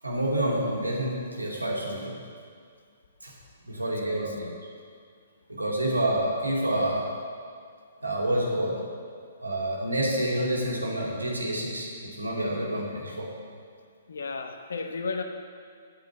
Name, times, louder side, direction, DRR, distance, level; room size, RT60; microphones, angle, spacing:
voice 1, 0.0-2.2 3.2-3.3 3.7-4.5 5.5-7.1 8.0-8.8 9.4-13.3, right 1 dB, 85° right, -3 dB, 2.7 m, -28 dB
voice 2, 3.8-4.6 14.1-15.2, left 4 dB, 65° left, 5 dB, 1.1 m, -35 dB
8.7 x 8.0 x 7.2 m, 2.1 s
figure-of-eight pair, 125°, 0 cm